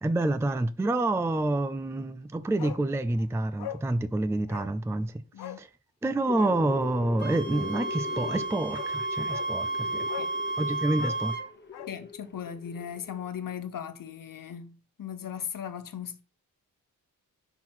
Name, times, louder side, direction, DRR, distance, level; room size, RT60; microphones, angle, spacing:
voice 1, 0.0-5.1 5.6-5.7 6.0-10.1 10.6-11.3, right 2 dB, 5° right, 0.4 m, -28 dB
Bark, 2.6-2.9 3.1-3.2 3.6-3.9 4.5-4.7 5.4-5.6 6.3-6.6 8.2-8.3 8.7-8.9 9.3-9.5 10.1-10.4 10.9-12.0 12.2-12.3, left 11 dB, 85° left, 0.7 m, -41 dB
sound 1, 6.0-13.3, left 6 dB, 30° left, 1.0 m, -41 dB
Wind instrument woodwind instrument, 7.2-11.5, right 3 dB, 30° right, 1.0 m, -32 dB
voice 2, 9.8-10.3 11.9-16.2, left 8 dB, 60° left, 1.0 m, -38 dB
6.0 x 4.5 x 5.7 m
cardioid pair, 95°, 37 cm